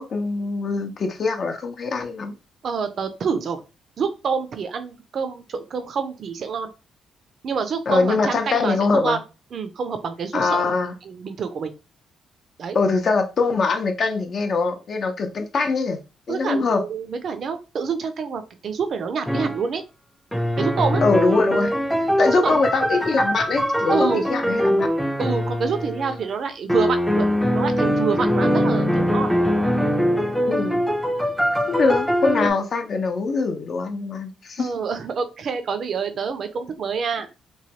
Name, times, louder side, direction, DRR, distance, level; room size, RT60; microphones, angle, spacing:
voice 1, 0.0-2.3 7.9-9.2 10.3-10.9 12.7-16.0 16.3-16.8 21.0-21.7 22.2-24.9 30.4-30.8 31.7-34.7, left 4 dB, 50° left, 0.6 m, -23 dB
voice 2, 2.6-3.6 4.0-6.7 7.4-9.2 9.5-10.7 11.0-11.7 12.6-12.8 16.3-19.8 20.6-21.0 22.3-22.7 23.9-24.3 25.2-29.4 34.6-37.3, right 6 dB, 55° right, 0.4 m, -27 dB
sound 1, 19.3-19.6 20.3-26.2 26.7-32.5, equal, ahead, 0.4 m, -22 dB
3.1 x 2.2 x 2.8 m
cardioid pair, 90°, 0 cm